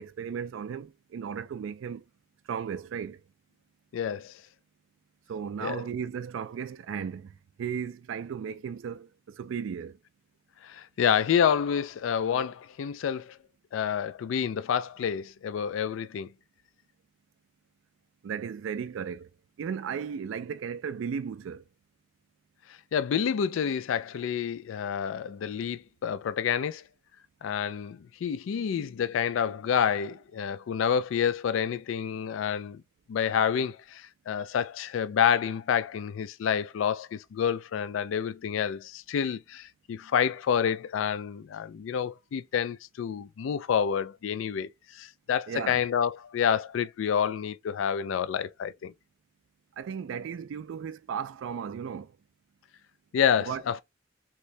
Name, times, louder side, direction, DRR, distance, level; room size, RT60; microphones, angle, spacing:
voice 1, 0.0-2.0 2.5-3.2 5.3-10.0 18.2-19.3 19.6-21.6 45.5-45.8 49.8-52.2 53.4-53.6, right 7 dB, 80° right, 0.3 m, -35 dB
voice 2, 3.9-4.4 5.6-5.8 10.6-13.4 13.7-16.3 22.9-26.8 27.4-32.8 33.1-48.9 53.1-53.8, left 8 dB, 85° left, 0.3 m, -28 dB
3.0 x 2.6 x 3.2 m
head